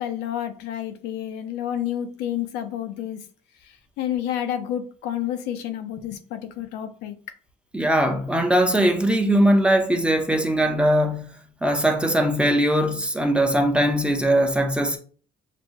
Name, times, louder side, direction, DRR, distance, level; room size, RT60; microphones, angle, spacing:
voice 1, 0.0-3.2 4.0-7.2, left 11 dB, 85° left, 0.6 m, -29 dB
voice 2, 7.7-11.3 11.6-15.0, right 1 dB, 5° right, 0.6 m, -20 dB
6.0 x 2.2 x 2.8 m
cardioid pair, 110°, 17 cm